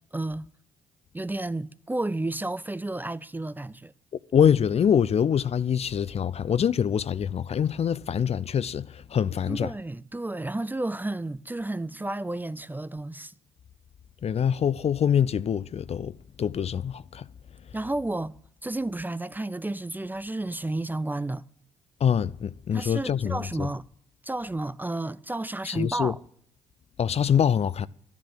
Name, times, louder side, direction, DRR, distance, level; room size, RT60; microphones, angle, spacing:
voice 1, 0.1-0.5 1.1-3.9 9.5-13.3 17.7-21.4 22.7-23.9 24.2-26.2, right 2 dB, 15° right, 0.5 m, -32 dB
voice 2, 4.3-9.7 14.2-17.3 22.0-23.7 25.7-26.1 27.0-27.9, left 8 dB, 45° left, 0.5 m, -24 dB
12.0 x 10.5 x 7.8 m
hypercardioid pair, 45°, 14 cm